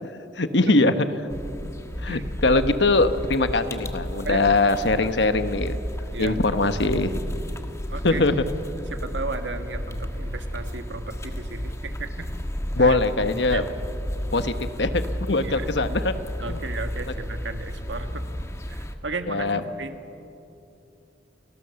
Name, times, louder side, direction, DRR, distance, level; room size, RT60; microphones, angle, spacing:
voice 1, 0.0-0.9 2.0-5.8 6.2-7.1 8.0-8.4 12.8-13.6 14.3-15.0 15.3-16.1 16.5-16.6 19.3-19.6, left 2 dB, 65° left, 10 dB, 1.2 m, -22 dB
sound 1, 1.3-18.9, equal, 15° left, 1.3 m, -32 dB
voice 2, 7.9-8.2 8.9-12.3 12.8-13.0 13.5-13.6 15.4-15.7 16.4-18.2 18.7-19.9, right 3 dB, 75° right, 7 dB, 1.7 m, -34 dB
29.0 x 19.5 x 7.0 m, 2.8 s
head